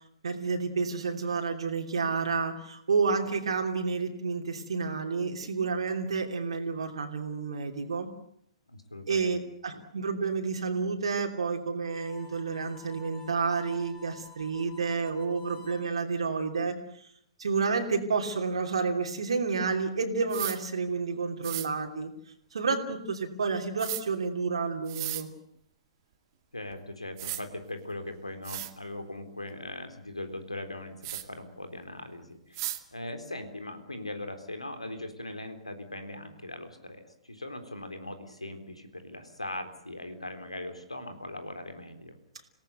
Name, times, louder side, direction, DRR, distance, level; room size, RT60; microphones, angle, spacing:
voice 1, 0.2-8.1 9.1-16.8 17.4-22.1 22.5-25.3, right 4 dB, 65° right, 2 dB, 3.0 m, -30 dB
voice 2, 8.7-9.4 26.5-42.2, left 1 dB, 85° left, 7 dB, 3.8 m, -40 dB
Harmonica, 11.8-15.9, left 2 dB, 15° left, 4.9 m, -51 dB
sound 1, 20.3-20.6 21.4-21.7 23.8-24.0 24.9-25.2 26.7-26.8 27.2-27.4 28.1-28.2 28.4-28.7 31.0-31.2 32.5-32.8, right 14 dB, 40° right, 2.1 m, -35 dB
27.5 x 18.0 x 8.1 m, 0.69 s
figure-of-eight pair, 115°, 3 cm